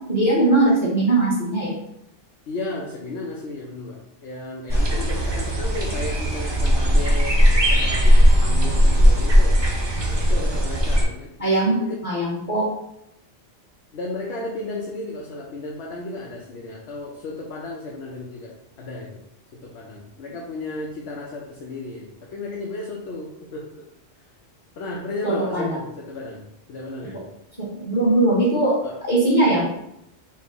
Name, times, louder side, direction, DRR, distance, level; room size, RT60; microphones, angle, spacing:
voice 1, 0.0-1.7 11.4-11.8 12.0-12.6 25.2-25.8 27.6-28.7 29.1-29.6, right 2 dB, 30° left, -8 dB, 1.2 m, -20 dB
voice 2, 2.5-9.6 10.0-11.3 11.7-12.0 13.9-19.2 19.5-23.8 24.8-27.3 28.8-29.0, left 2 dB, 70° left, -2 dB, 0.8 m, -34 dB
sound 1, 4.7-11.0, equal, 35° right, 0.4 m, -18 dB
4.2 x 2.1 x 3.7 m, 0.81 s
omnidirectional pair, 1.2 m